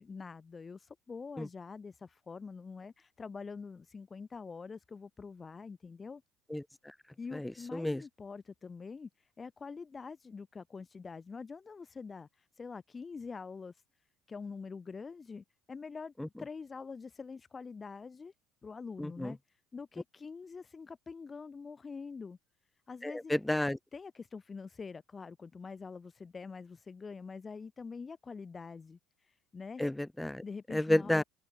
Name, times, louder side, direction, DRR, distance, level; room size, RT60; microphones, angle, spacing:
voice 1, 0.0-6.2 7.2-13.8 14.3-18.3 18.6-19.4 19.7-22.4 22.9-23.3 23.9-29.8 30.4-31.2, left 5 dB, 30° left, 3.0 m, -45 dB
voice 2, 19.0-19.3 23.0-23.8 29.8-30.4 30.7-31.2, left 1 dB, 5° left, 0.6 m, -30 dB
hypercardioid pair, 70°, 0 cm